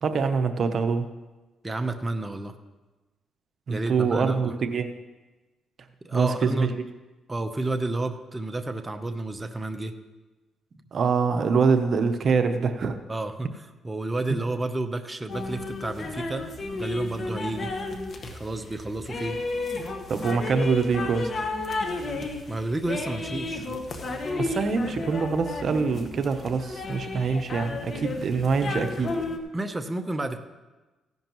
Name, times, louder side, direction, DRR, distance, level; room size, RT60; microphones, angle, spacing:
voice 1, 0.0-1.0 3.7-4.9 6.1-6.7 10.9-13.0 20.1-21.3 24.4-29.1, right 5 dB, 55° right, 8 dB, 0.9 m, -24 dB
voice 2, 1.6-2.6 3.7-4.5 6.0-6.8 7.3-9.9 13.1-16.5 16.8-17.7 18.3-19.4 22.5-23.7 29.5-30.4, right 2 dB, 20° right, 6 dB, 0.8 m, -31 dB
sound 1, 15.3-29.4, left 3 dB, 45° left, 1.4 m, -33 dB
16.0 x 11.0 x 3.1 m, 1.2 s
cardioid pair, 90°, 0 cm